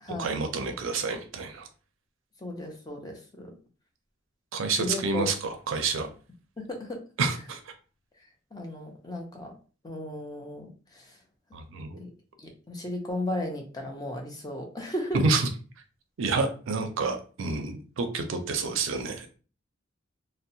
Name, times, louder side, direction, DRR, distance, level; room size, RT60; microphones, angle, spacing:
voice 1, 0.2-1.7 4.5-6.1 7.2-7.6 11.5-12.0 15.1-15.5 16.2-19.3, right 4 dB, 65° right, 6 dB, 0.4 m, -28 dB
voice 2, 2.4-3.6 4.8-5.3 6.6-7.0 8.5-9.5 9.8-11.2 12.0-12.1 12.4-15.2, left 1 dB, 20° left, 2 dB, 0.5 m, -35 dB
2.7 x 2.0 x 2.6 m, 0.37 s
head